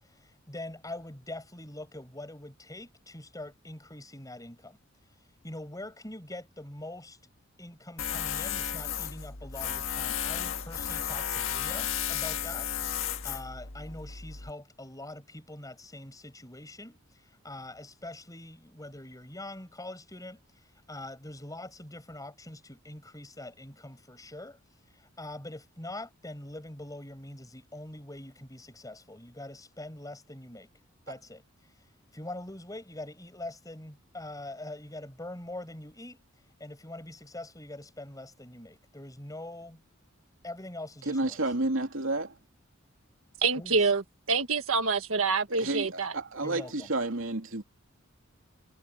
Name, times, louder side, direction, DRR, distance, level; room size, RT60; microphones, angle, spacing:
voice 1, 0.0-4.8 5.4-7.2 7.6-12.7 13.2-17.0 17.4-24.6 24.9-30.7 31.1-31.4 32.1-36.2 36.6-39.8 40.4-41.4 43.6-43.8 46.4-46.9, left 1 dB, 15° left, 7.2 m, -43 dB
Tools, 8.0-14.5, left 9 dB, 70° left, 1.7 m, -33 dB
voice 2, 41.0-42.3 45.5-47.6, right 2 dB, 70° right, 3.1 m, -30 dB
voice 3, 43.4-44.0 44.3-46.1, right 4 dB, 90° right, 1.6 m, -26 dB
head